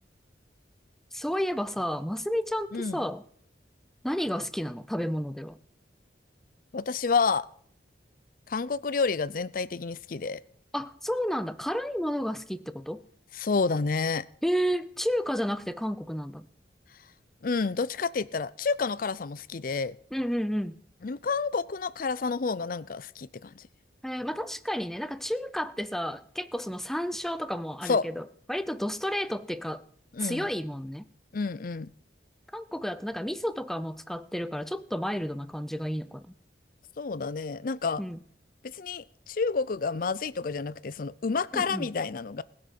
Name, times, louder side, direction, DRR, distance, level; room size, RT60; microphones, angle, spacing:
voice 1, 1.1-3.2 4.0-5.6 10.7-13.0 14.4-16.5 20.1-20.8 24.0-29.8 30.2-31.1 32.5-36.3 38.0-38.2 41.5-41.9, equal, ahead, 0.5 m, -31 dB
voice 2, 2.7-3.0 6.7-7.5 8.5-10.4 13.4-14.2 17.4-20.0 21.0-23.6 27.8-28.0 30.1-30.5 31.3-31.9 37.0-38.0 38.7-42.4, left 4 dB, 50° left, 0.5 m, -29 dB
19.5 x 6.6 x 5.9 m
head